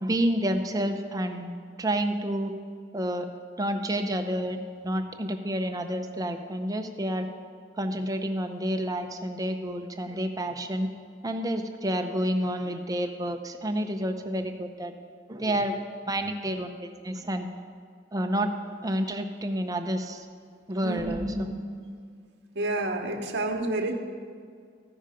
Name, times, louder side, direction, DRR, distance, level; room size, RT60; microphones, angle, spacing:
voice 1, 0.0-2.5 2.9-3.3 3.6-7.3 7.8-10.9 11.2-14.9 15.3-17.5 18.1-18.5 18.8-20.3 20.7-21.3, right 1 dB, 20° right, 5 dB, 0.6 m, -29 dB
voice 2, 20.8-21.4 22.5-23.9, right 2 dB, 60° right, 3 dB, 1.1 m, -29 dB
14.5 x 5.5 x 5.0 m, 2.1 s
head